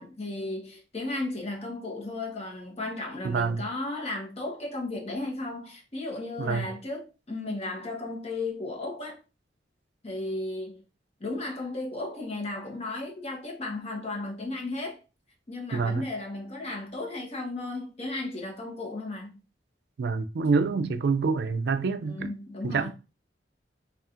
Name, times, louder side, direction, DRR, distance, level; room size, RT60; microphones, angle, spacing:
voice 1, 0.0-9.2 10.0-10.8 11.2-15.0 15.5-19.4 20.7-20.9 22.0-22.9, left 2 dB, 35° left, 0.9 m, -35 dB
voice 2, 3.2-3.6 6.4-6.7 15.7-16.1 20.0-22.3 22.6-22.9, right 4 dB, 65° right, 0.4 m, -26 dB
4.0 x 2.4 x 2.4 m
head